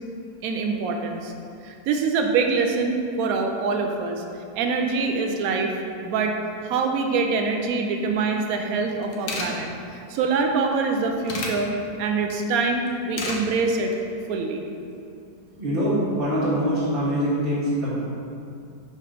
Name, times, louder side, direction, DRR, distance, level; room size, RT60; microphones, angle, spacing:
voice 1, 0.4-1.3 1.6-4.2 4.6-5.7 6.0-6.4 6.6-13.9 14.3-14.6, right 4 dB, 65° right, 4 dB, 1.0 m, -24 dB
sound 1, 8.7-8.8 9.0-9.5 10.7-11.5 12.9-13.4 13.7-14.0, left 2 dB, 65° left, 1.3 m, -31 dB
voice 2, 15.6-17.9, equal, 30° right, -11 dB, 1.3 m, -23 dB
5.1 x 4.3 x 5.1 m, 2.5 s
omnidirectional pair, 1.8 m